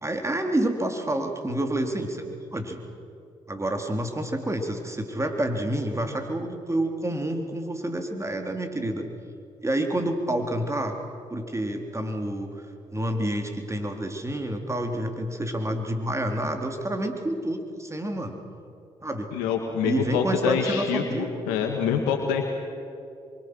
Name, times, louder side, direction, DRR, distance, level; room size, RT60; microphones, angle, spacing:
voice 1, 0.0-2.3 2.5-2.8 3.5-9.1 9.6-11.0 11.3-12.5 12.9-18.4 19.0-19.3 19.8-21.3, right 1 dB, 20° right, 4 dB, 3.8 m, -28 dB
voice 2, 19.3-22.4, left 7 dB, 85° left, 3 dB, 1.8 m, -26 dB
27.5 x 24.0 x 6.4 m, 2.6 s
hypercardioid pair, 50°, 14 cm